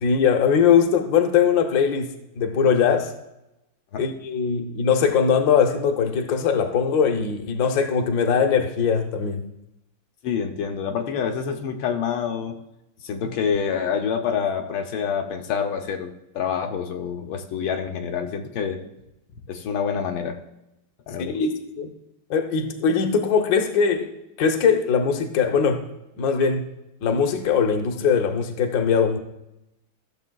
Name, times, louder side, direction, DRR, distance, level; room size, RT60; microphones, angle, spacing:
voice 1, 0.0-3.1 4.0-9.4 21.2-21.9 22.3-24.1 24.4-25.8 26.2-26.6 27.0-29.2, left 6 dB, 60° left, 5 dB, 1.2 m, -21 dB
voice 2, 10.2-12.6 13.0-18.8 19.5-20.4 21.1-21.4, left 7 dB, 80° left, 3 dB, 1.5 m, -27 dB
14.5 x 6.8 x 2.3 m, 0.89 s
omnidirectional pair, 2.1 m